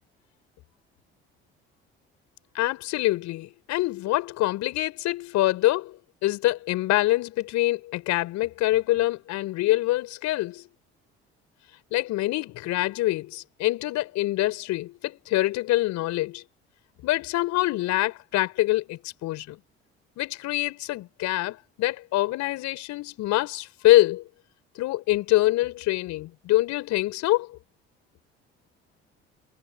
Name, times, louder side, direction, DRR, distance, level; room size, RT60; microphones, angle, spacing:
voice 1, 2.5-6.0 6.2-10.6 11.9-16.4 17.0-19.6 20.2-24.2 24.8-27.5, left 17 dB, 60° left, 4.2 m, -25 dB
figure-of-eight pair, 55°, 31 cm